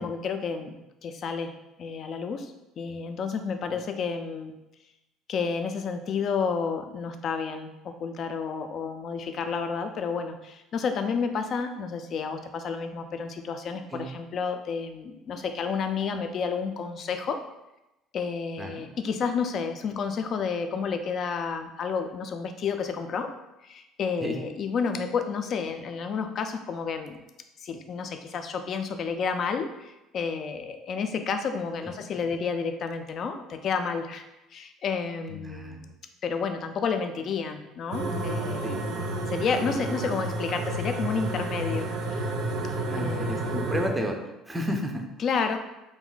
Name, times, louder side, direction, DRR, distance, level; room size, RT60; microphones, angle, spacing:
voice 1, 0.0-1.5 1.8-4.5 5.3-17.4 18.1-23.3 23.6-27.2 27.6-34.2 34.5-35.8 36.2-38.8 39.3-42.3 43.0-43.6 45.2-45.6, left 5 dB, 50° left, 7 dB, 0.3 m, -31 dB
voice 2, 35.3-35.9 38.6-38.9 42.8-44.2 44.5-45.0, equal, 10° right, 2 dB, 0.4 m, -32 dB
sound 1, 37.9-43.9, right 2 dB, 70° right, 0.4 m, -30 dB
2.4 x 2.1 x 3.8 m, 0.95 s
supercardioid pair, 95°, 0 cm